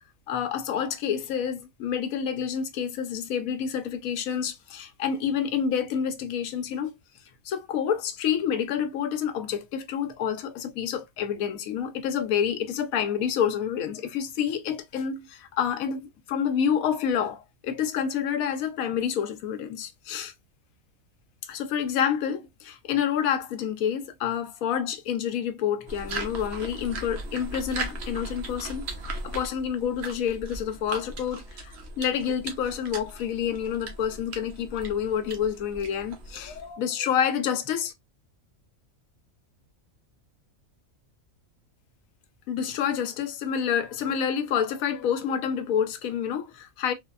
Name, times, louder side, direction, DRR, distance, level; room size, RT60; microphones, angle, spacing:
voice 1, 0.3-7.0 7.4-20.3 21.4-37.9 42.5-46.9, left 8 dB, 85° left, 1.0 m, -28 dB
sound 1, 25.9-36.7, right 3 dB, 60° right, 0.9 m, -38 dB
3.3 x 2.1 x 2.2 m
omnidirectional pair, 1.4 m